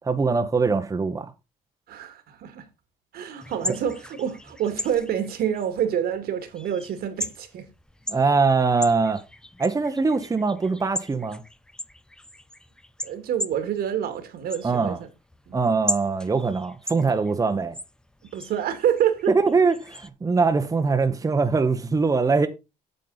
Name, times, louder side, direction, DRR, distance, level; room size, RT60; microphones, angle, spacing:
voice 1, 0.0-1.3 8.1-9.2 9.6-11.4 14.6-15.0 15.5-17.7 19.3-22.5, right 4 dB, 20° right, 0.9 m, -22 dB
voice 2, 1.9-2.6 3.1-7.7 13.0-15.0 15.5-15.6 18.3-19.3, right 9 dB, 65° right, 2.0 m, -27 dB
sound 1, 3.4-20.1, left 1 dB, 5° left, 0.5 m, -38 dB
8.8 x 7.4 x 4.0 m
cardioid pair, 110°, 17 cm